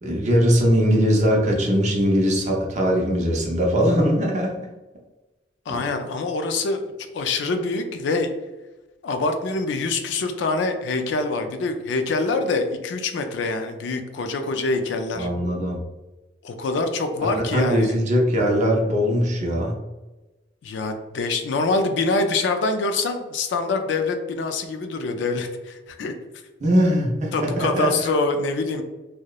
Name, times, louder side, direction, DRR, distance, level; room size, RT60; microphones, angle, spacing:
voice 1, 0.0-4.5 5.7-5.8 15.2-15.8 17.2-19.8 26.6-27.9, equal, 40° right, 0 dB, 0.5 m, -21 dB
voice 2, 5.7-8.3 9.0-15.3 16.4-17.9 20.6-26.1 27.3-28.8, left 3 dB, 70° left, 7 dB, 0.3 m, -25 dB
2.8 x 2.0 x 2.3 m, 1.1 s
head